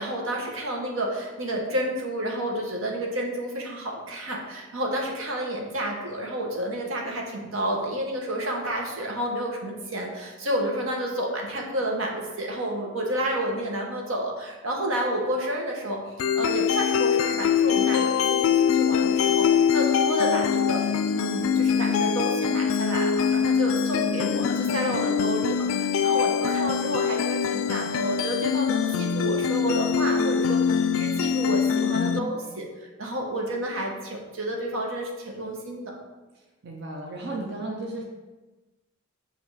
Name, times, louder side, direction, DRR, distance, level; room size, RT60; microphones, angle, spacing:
voice 1, 0.0-16.0 16.3-20.8 21.1-32.7 33.0-35.9, right 1 dB, 85° right, 0 dB, 1.0 m, -30 dB
sound 1, 16.2-32.2, left 7 dB, 75° left, 0.3 m, -23 dB
voice 2, 36.6-38.0, right 2 dB, 55° right, -1 dB, 0.7 m, -34 dB
7.5 x 2.7 x 4.7 m, 1.2 s
head